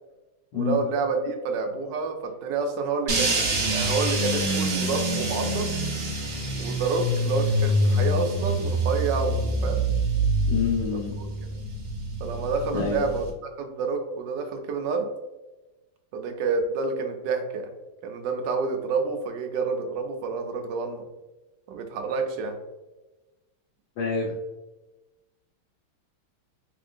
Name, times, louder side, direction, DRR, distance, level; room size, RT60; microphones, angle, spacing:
voice 1, 0.5-5.7 6.6-9.8 11.2-11.3 12.2-13.3 13.6-15.1 16.1-17.7 18.0-21.0 21.7-22.5, right 4 dB, 75° right, 4 dB, 1.2 m, -28 dB
sound 1, 3.1-13.3, right 1 dB, 55° right, 1.4 m, -26 dB
voice 2, 10.5-11.1 12.7-13.0 24.0-24.3, left 5 dB, 60° left, -4 dB, 1.3 m, -26 dB
3.6 x 3.5 x 2.5 m, 1.1 s
omnidirectional pair, 2.2 m